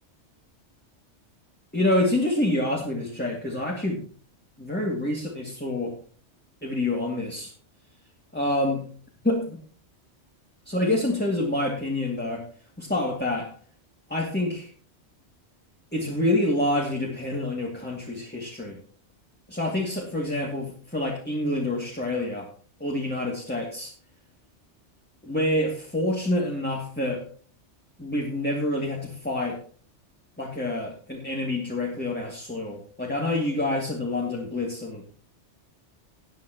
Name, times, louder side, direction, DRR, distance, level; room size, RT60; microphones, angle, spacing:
voice 1, 1.7-4.0 4.6-6.0 6.6-7.5 8.3-8.8 9.2-9.6 10.7-12.5 12.8-13.5 14.1-14.7 15.9-18.8 19.5-22.5 22.8-23.9 25.2-27.2 28.0-29.6 30.4-35.0, left 1 dB, 10° left, -2 dB, 2.2 m, -27 dB
19.0 x 9.1 x 3.0 m, 0.42 s
omnidirectional pair, 1.2 m